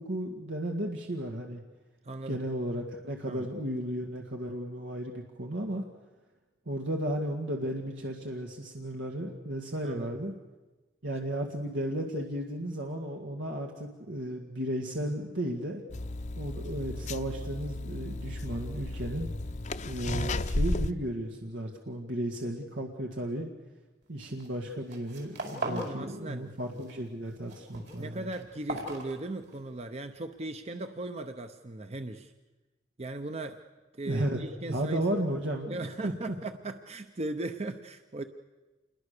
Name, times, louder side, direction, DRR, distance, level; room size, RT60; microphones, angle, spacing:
voice 1, 0.0-1.6 2.3-5.8 6.7-10.3 11.0-15.8 16.4-19.3 19.9-23.5 24.1-28.2 34.1-34.4 34.7-36.1, right 1 dB, 85° right, 2 dB, 2.0 m, -34 dB
voice 2, 2.0-2.4 3.3-3.5 9.8-10.1 25.6-26.5 27.9-32.3 33.0-33.6 33.9-35.0 35.7-38.2, right 2 dB, 35° right, 8 dB, 0.8 m, -38 dB
sound 1, 15.9-20.9, left 2 dB, 40° left, 0.8 m, -33 dB
sound 2, 24.2-24.6 24.8-26.0 26.3-26.9 27.3-29.7, right 1 dB, 65° right, 4.9 m, -38 dB
28.0 x 21.5 x 6.7 m, 1.2 s
head